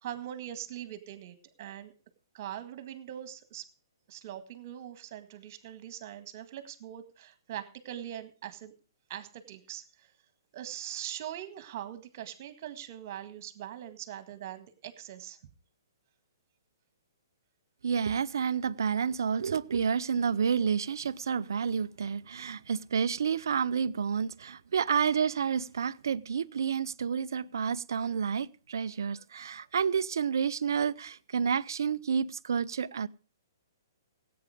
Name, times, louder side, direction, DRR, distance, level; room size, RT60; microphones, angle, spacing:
voice 1, 0.0-1.9 2.3-3.7 4.1-8.7 9.1-10.1 10.5-15.4, right 11 dB, 45° right, 1.8 m, -42 dB
voice 2, 17.8-33.1, right 6 dB, 70° right, 0.5 m, -30 dB
16.0 x 8.7 x 4.9 m
hypercardioid pair, 130°, 2 cm